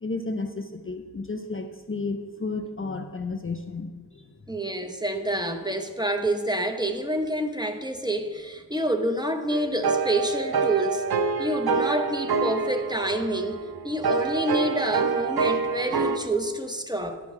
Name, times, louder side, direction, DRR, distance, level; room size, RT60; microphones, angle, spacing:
voice 1, 0.0-4.4, left 3 dB, 35° left, 6 dB, 0.5 m, -32 dB
voice 2, 4.5-11.1 11.4-17.2, right 1 dB, 10° right, 4 dB, 0.7 m, -28 dB
sound 1, 9.5-16.2, right 5 dB, 70° right, 0.7 m, -26 dB
10.5 x 7.9 x 3.6 m, 1.5 s
wide cardioid pair, 60°, 39 cm